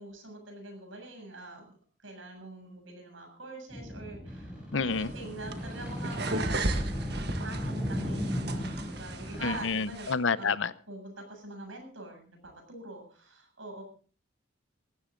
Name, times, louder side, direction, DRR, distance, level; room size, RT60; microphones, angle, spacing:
voice 1, 0.0-1.8 2.0-4.5 4.8-6.6 7.3-10.6 10.9-13.8, right 2 dB, 75° right, 3 dB, 7.5 m, -44 dB
sound 1, 3.7-9.6, equal, 5° right, 6.1 m, -36 dB
voice 2, 4.7-5.1 9.4-10.7, left 5 dB, 70° left, 16 dB, 0.8 m, -29 dB
sound 2, 4.9-10.1, right 2 dB, 50° right, 1.7 m, -36 dB
18.5 x 15.0 x 3.9 m, 0.40 s
head